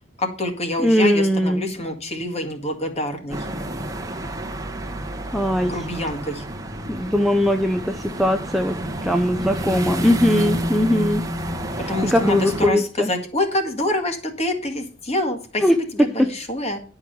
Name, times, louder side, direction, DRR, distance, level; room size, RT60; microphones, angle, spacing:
voice 1, 0.2-3.5 5.6-6.4 11.9-16.8, left 1 dB, 30° left, 4 dB, 1.8 m, -26 dB
voice 2, 0.8-1.6 5.3-5.8 6.9-8.8 9.0-11.2 11.8-13.1 15.6-15.8, left 1 dB, ahead, 4 dB, 0.5 m, -20 dB
sound 1, 3.3-12.7, equal, 15° right, 1.1 m, -29 dB
11.0 x 4.8 x 6.8 m, 0.40 s
head